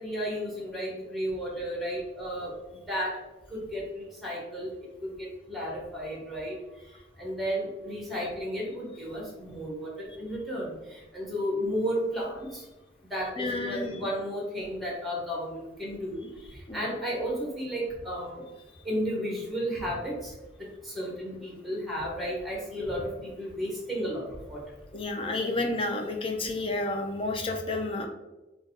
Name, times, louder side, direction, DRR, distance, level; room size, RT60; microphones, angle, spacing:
voice 1, 0.0-2.5 2.9-3.2 3.5-4.7 5.2-6.5 7.2-12.6 13.1-16.3 16.7-18.4 18.8-20.3 20.8-24.6, equal, ahead, -3 dB, 1.2 m, -33 dB
voice 2, 13.4-14.0 16.7-16.9 24.9-28.1, left 2 dB, 30° left, 3 dB, 0.5 m, -31 dB
3.7 x 2.3 x 4.1 m, 1.0 s
head